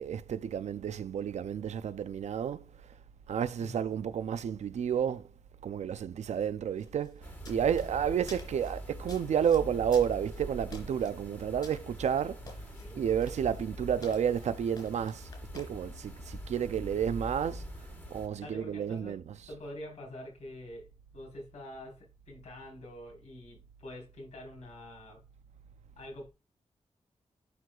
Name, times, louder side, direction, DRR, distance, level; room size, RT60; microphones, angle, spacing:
voice 1, 0.0-2.7 3.3-5.3 5.6-12.5 12.9-17.7 18.1-19.5, right 8 dB, 80° right, 0.5 m, -31 dB
voice 2, 3.6-3.9 12.7-13.1 18.4-19.2 19.5-20.9 21.1-25.2 26.0-26.3, left 1 dB, 80° left, 4.2 m, -46 dB
sound 1, 6.8-15.7, left 2 dB, 40° left, 3.2 m, -53 dB
sound 2, 7.2-18.3, equal, 15° left, 1.7 m, -43 dB
11.5 x 4.7 x 2.4 m
wide cardioid pair, 170°, 12 cm